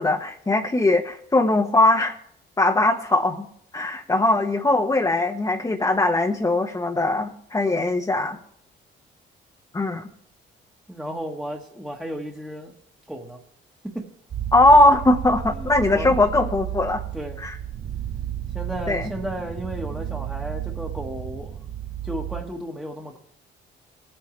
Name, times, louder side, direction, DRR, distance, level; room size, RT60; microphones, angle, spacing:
voice 1, 0.0-2.1 2.6-3.5 3.7-8.4 9.7-10.0 14.5-17.0 17.4-17.6 18.9-19.1, left 2 dB, 15° left, 1 dB, 1.0 m, -20 dB
voice 2, 10.9-12.7 13.1-13.4 13.8-14.1 15.5-16.2 17.1-17.4 18.5-21.6 22.0-23.2, equal, 5° right, 0 dB, 1.4 m, -34 dB
sound 1, 14.3-22.4, right 11 dB, 40° right, 0.6 m, -32 dB
19.5 x 8.7 x 3.2 m, 0.69 s
cardioid pair, 90°, 20 cm